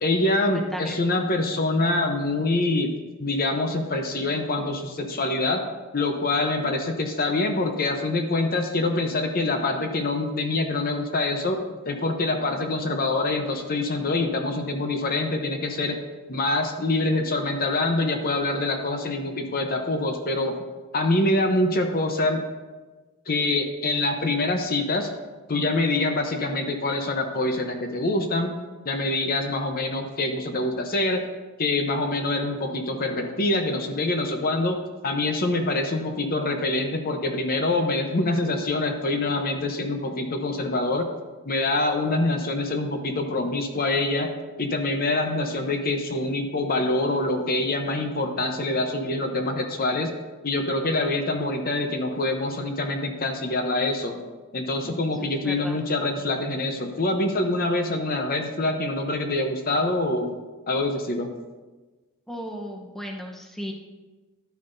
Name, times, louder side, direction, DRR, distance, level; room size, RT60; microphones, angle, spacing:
voice 1, 0.0-2.9 3.2-5.6 5.9-16.0 16.3-20.5 20.9-22.4 23.3-25.1 25.5-28.5 28.8-31.2 31.6-41.1 41.5-44.3 44.6-50.1 50.4-54.2 54.5-60.3 60.7-61.3, left 2 dB, 45° left, 5 dB, 0.8 m, -25 dB
voice 2, 0.5-1.0 54.8-55.8 62.3-63.7, equal, ahead, 0 dB, 0.9 m, -36 dB
11.5 x 9.2 x 2.6 m, 1.2 s
head